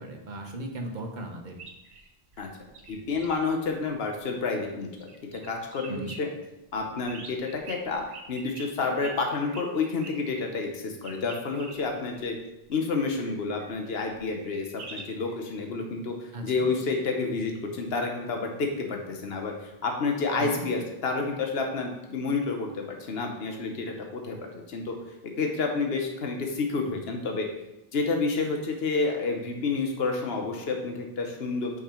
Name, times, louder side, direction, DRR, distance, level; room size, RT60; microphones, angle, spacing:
voice 1, 0.0-1.6 5.9-6.2 16.3-16.7 20.4-20.7, right 1 dB, 50° right, 2 dB, 1.1 m, -36 dB
sound 1, 1.6-4.7 5.0-6.2 6.7-10.1 11.0-15.4 21.2-21.3, right 3 dB, 85° right, 1.2 m, -46 dB
voice 2, 2.9-6.3 6.7-8.0 8.3-12.4 12.7-24.4 24.7-24.9 25.4-27.5 27.9-31.8, left 4 dB, 75° left, 2 dB, 1.2 m, -29 dB
6.4 x 5.6 x 4.4 m, 0.91 s
omnidirectional pair, 1.0 m